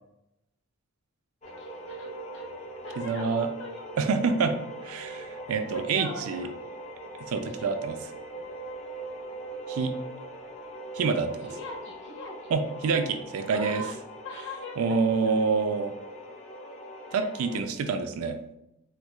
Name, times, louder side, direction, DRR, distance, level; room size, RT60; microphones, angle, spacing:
voice 1, 1.4-2.5 2.8-4.4 5.5-6.7 7.5-7.7 11.3-12.5 13.5-14.0 14.2-15.0 15.2-15.3 17.1-17.3, left 2 dB, 55° left, -2 dB, 1.0 m, -42 dB
sound 1, 1.4-17.6, right 1 dB, 30° left, 0.4 m, -41 dB
voice 2, 3.0-3.5 4.0-4.5 4.8-6.5 7.3-8.1 9.7-9.9 10.9-11.5 12.5-13.8 14.8-15.9 17.1-18.4, right 5 dB, 80° right, 7 dB, 0.4 m, -27 dB
4.4 x 2.3 x 2.3 m, 0.85 s
head